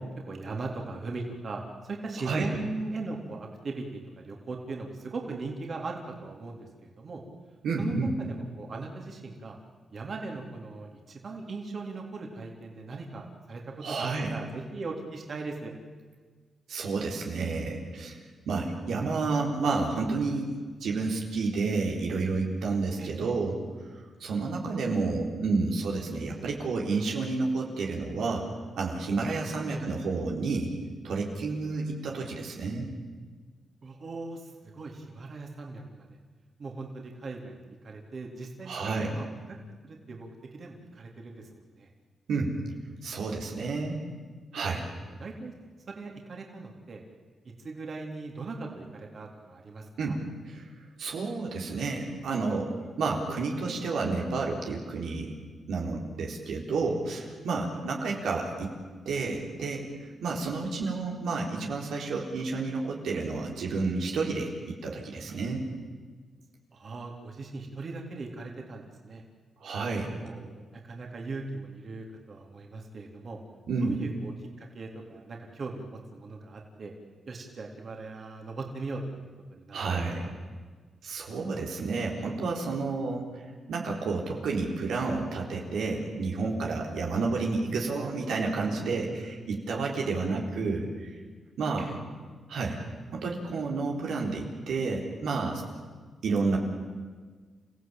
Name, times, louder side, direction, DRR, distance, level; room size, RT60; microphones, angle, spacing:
voice 1, 0.0-7.2 7.8-9.6 9.9-15.7 23.0-23.3 29.7-29.8 33.8-36.1 36.6-39.6 39.8-41.5 41.8-41.9 43.7-43.8 45.1-45.5 45.9-47.0 47.4-50.2 57.7-58.0 66.7-69.2 70.2-73.4 73.8-76.9 77.3-80.3 91.8-92.0, right 3 dB, 50° right, 1 dB, 3.7 m, -39 dB
voice 2, 7.6-8.1 13.8-14.4 16.7-18.2 18.5-20.5 20.8-23.6 24.2-28.5 28.8-30.7 31.0-32.9 38.6-39.1 42.3-42.5 43.0-44.0 44.5-44.9 50.0-50.7 51.0-55.3 55.7-58.7 59.1-59.9 60.2-65.6 69.6-70.1 73.7-74.0 79.7-80.3 81.0-83.4 83.7-91.1 91.6-91.8 92.5-92.8 93.1-95.6 96.2-96.6, right 3 dB, 85° right, 0 dB, 4.1 m, -30 dB
29.5 x 16.0 x 9.0 m, 1.5 s
cardioid pair, 85°, 0 cm